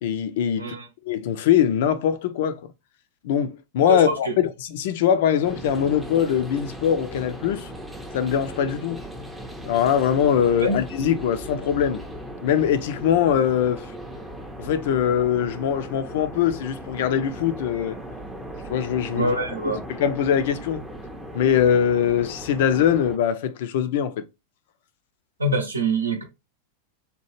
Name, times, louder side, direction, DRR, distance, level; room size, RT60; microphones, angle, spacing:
voice 1, 0.0-0.8 1.0-2.6 3.2-7.7 8.1-9.0 9.7-12.0 12.4-13.9 14.6-18.0 18.7-19.4 19.9-20.8 21.3-24.2, left 9 dB, 55° left, 0.4 m, -22 dB
voice 2, 0.6-0.9 3.9-4.3 10.6-10.8 19.2-19.8 25.4-26.2, right 2 dB, 75° right, 0.6 m, -25 dB
sound 1, 5.4-23.2, equal, 5° right, 0.5 m, -37 dB
2.9 x 2.2 x 3.0 m
figure-of-eight pair, 90°, 0 cm